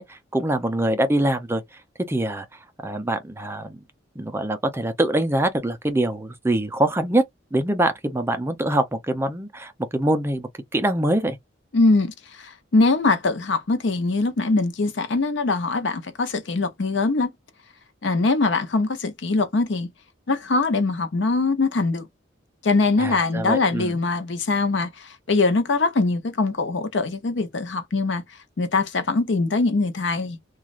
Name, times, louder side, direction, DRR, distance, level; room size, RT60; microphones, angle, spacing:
voice 1, 0.0-1.6 2.1-2.5 2.8-3.8 4.2-7.2 7.5-11.4 23.0-24.0, right 1 dB, 15° right, 0.4 m, -24 dB
voice 2, 11.7-17.3 18.0-19.9 20.3-22.1 22.6-28.2 28.6-30.4, left 3 dB, 70° left, 0.7 m, -22 dB
3.1 x 2.3 x 2.4 m
head